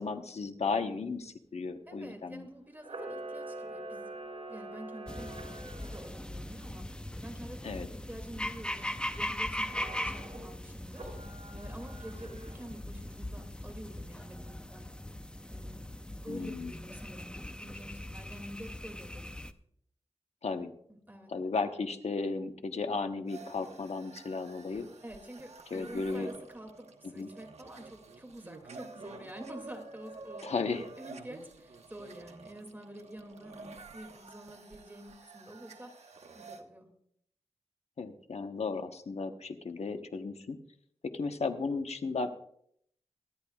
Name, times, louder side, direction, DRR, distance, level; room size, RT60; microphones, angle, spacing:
voice 1, 0.0-2.4 7.6-7.9 16.3-16.7 20.4-20.7 21.3-24.9 25.7-26.3 27.0-27.3 30.4-30.8 38.0-40.6 41.0-42.3, left 4 dB, 75° left, 7 dB, 1.0 m, -35 dB
voice 2, 1.9-4.1 4.5-11.2 11.5-14.9 15.5-15.9 16.2-19.2 20.9-21.3 25.0-30.5 31.0-36.1 36.3-36.9, right 1 dB, 15° right, 4 dB, 2.4 m, -48 dB
Camera, 2.8-6.1 9.7-10.4 10.9-12.7, right 2 dB, 65° right, 4.9 m, -44 dB
sound 1, 5.1-19.5, left 1 dB, 10° left, 0.6 m, -40 dB
sound 2, 23.3-36.6, right 4 dB, 80° right, 1.1 m, -50 dB
24.0 x 10.5 x 2.4 m, 0.68 s
wide cardioid pair, 80°, 11 cm